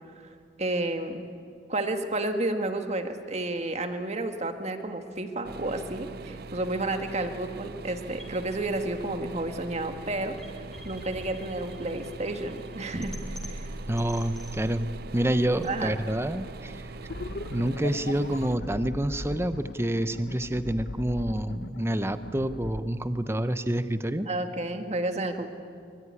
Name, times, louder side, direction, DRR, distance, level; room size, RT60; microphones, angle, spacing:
voice 1, 0.2-1.2 1.7-13.7 15.6-16.0 24.3-25.5, right 2 dB, 40° right, 6 dB, 1.8 m, -31 dB
sound 1, 5.4-18.5, right 3 dB, 60° right, 0.6 m, -42 dB
sound 2, 8.2-20.2, equal, ahead, 3.4 m, -44 dB
voice 2, 13.9-16.9 17.5-24.3, right 1 dB, 15° right, 11 dB, 0.8 m, -28 dB
sound 3, 17.1-22.8, left 2 dB, 60° left, 0.9 m, -38 dB
24.0 x 24.0 x 9.7 m, 2.2 s
head